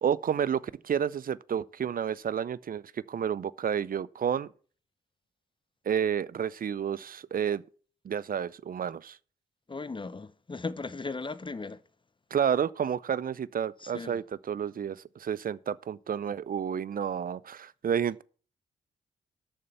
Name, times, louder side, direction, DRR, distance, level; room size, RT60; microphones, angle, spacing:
voice 1, 0.0-4.5 5.9-7.6 8.0-9.2 12.3-18.2, right 8 dB, 50° right, 0.6 m, -30 dB
voice 2, 9.7-11.8 13.8-14.2, left 3 dB, 25° left, 0.8 m, -37 dB
8.9 x 6.8 x 6.8 m
hypercardioid pair, 40°, 19 cm